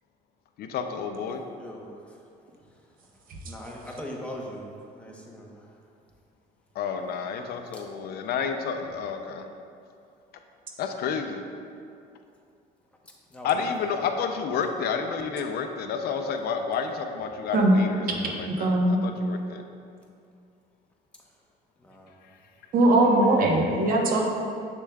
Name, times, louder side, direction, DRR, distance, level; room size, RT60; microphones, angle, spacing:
voice 1, 0.6-1.4 6.8-9.4 10.8-11.4 13.4-19.6, left 6 dB, 65° left, 6 dB, 0.5 m, -30 dB
voice 2, 3.4-4.6 5.0-5.5 7.7-7.8 13.3-13.5 13.8-13.9 21.8-22.1, left 1 dB, 5° left, -2 dB, 1.0 m, -39 dB
voice 3, 18.5-19.0 22.7-24.3, right 1 dB, 55° right, 1 dB, 1.0 m, -20 dB
7.3 x 6.8 x 2.3 m, 2.4 s
cardioid pair, 110°, 17 cm